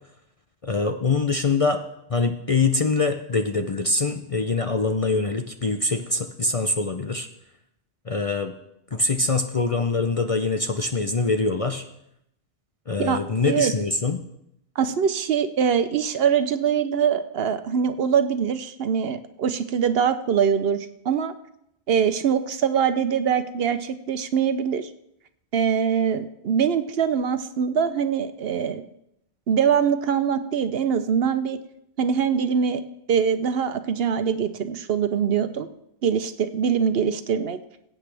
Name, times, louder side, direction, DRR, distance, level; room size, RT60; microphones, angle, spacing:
voice 1, 0.6-1.8 2.1-7.3 8.1-8.5 8.9-11.8 12.9-14.2, left 3 dB, 40° left, 6 dB, 0.5 m, -24 dB
voice 2, 14.8-21.3 21.9-24.9 25.5-28.8 29.5-31.6 32.0-32.8 33.1-35.7 36.0-37.6, right 7 dB, 65° right, 11 dB, 0.8 m, -23 dB
20.5 x 8.6 x 3.3 m, 0.80 s
omnidirectional pair, 1.2 m